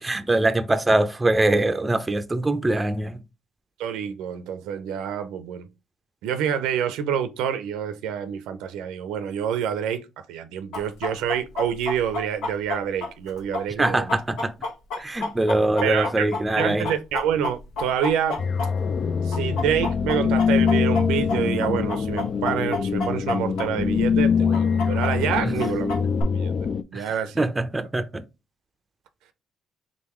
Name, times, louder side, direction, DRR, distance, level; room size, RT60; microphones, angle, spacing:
voice 1, 0.0-3.2 13.8-14.5 15.0-16.9 25.4-25.5 26.9-28.2, right 2 dB, 15° right, 0.5 m, -23 dB
voice 2, 3.8-5.7 6.2-14.2 15.8-16.2 16.6-18.4 19.2-26.0 26.3-26.5 26.9-27.4, right 9 dB, 85° right, 0.5 m, -27 dB
Chicken rooster, 10.7-19.0 19.3-23.7 23.9-24.0 24.5-26.2, left 3 dB, 75° left, 1.0 m, -30 dB
sound 1, 18.4-26.8, left 6 dB, 50° left, 0.4 m, -23 dB
3.8 x 3.7 x 3.0 m
cardioid pair, 85°, 0 cm